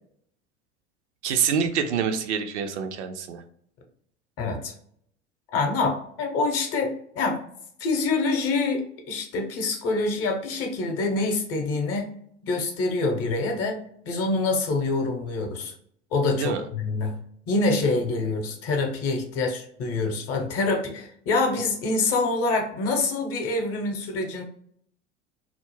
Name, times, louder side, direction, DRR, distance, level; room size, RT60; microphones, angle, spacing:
voice 1, 1.2-3.4 16.4-16.6, right 7 dB, 75° right, 6 dB, 0.5 m, -26 dB
voice 2, 4.4-4.7 5.5-7.4 7.8-8.8 9.1-12.1 12.4-13.8 14.0-15.7 16.1-17.1 17.5-24.4, left 3 dB, 45° left, 4 dB, 0.8 m, -26 dB
2.3 x 2.1 x 3.0 m, 0.65 s
figure-of-eight pair, 75°, 35 cm